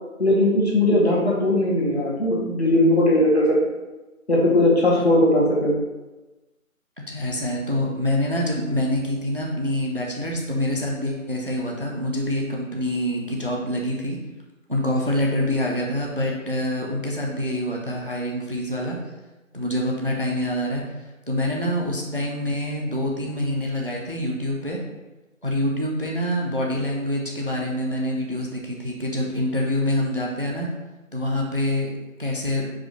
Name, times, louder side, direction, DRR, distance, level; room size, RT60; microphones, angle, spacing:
voice 1, 0.2-3.6 4.3-5.7, left 1 dB, 50° left, -4 dB, 1.2 m, -19 dB
voice 2, 7.1-14.2 14.7-19.0 19.5-24.8 25.4-30.7 31.1-31.9 32.2-32.7, left 1 dB, 40° right, -1 dB, 0.5 m, -26 dB
4.9 x 2.1 x 3.8 m, 1.1 s
figure-of-eight pair, 170°, 42 cm